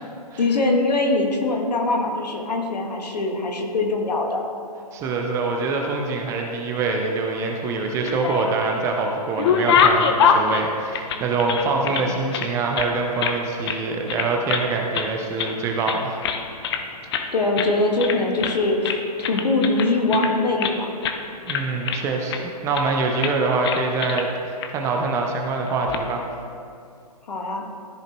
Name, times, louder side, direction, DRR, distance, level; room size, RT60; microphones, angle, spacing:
voice 1, 0.4-4.4 11.9-12.1 17.3-20.9 27.3-27.6, left 2 dB, 75° left, 2 dB, 1.6 m, -22 dB
voice 2, 4.9-16.2 21.5-26.3, right 3 dB, 15° right, 2 dB, 0.5 m, -25 dB
sound 1, 7.9-8.8 9.1-12.1 12.3-13.4 13.7-13.8 14.1-14.7 14.9-15.6 15.9-16.8 17.1-17.3 17.6-17.7 18.0-18.6 18.8-20.8 21.0-21.2 21.5-22.4 22.7-22.9 23.2-23.4 23.6-24.3 24.6-24.7 25.7-26.0, left 6 dB, 40° left, 0.7 m, -23 dB
14.0 x 4.9 x 3.0 m, 2.4 s
hypercardioid pair, 140°, 21 cm